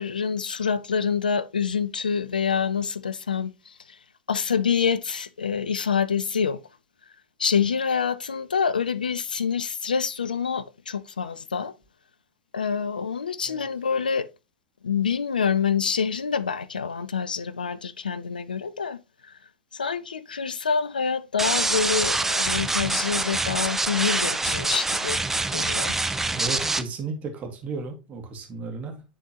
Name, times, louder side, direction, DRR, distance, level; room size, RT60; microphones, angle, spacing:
voice 1, 0.0-4.0 4.3-6.6 7.4-11.7 12.5-14.3 14.8-19.3 19.7-25.2 25.5-26.0, left 6 dB, 75° left, 0.4 m, -26 dB
sound 1, 21.4-26.8, right 2 dB, 5° right, 0.4 m, -25 dB
voice 2, 26.3-29.0, right 4 dB, 30° right, 1.6 m, -34 dB
9.8 x 3.7 x 2.9 m
figure-of-eight pair, 90°, 5 cm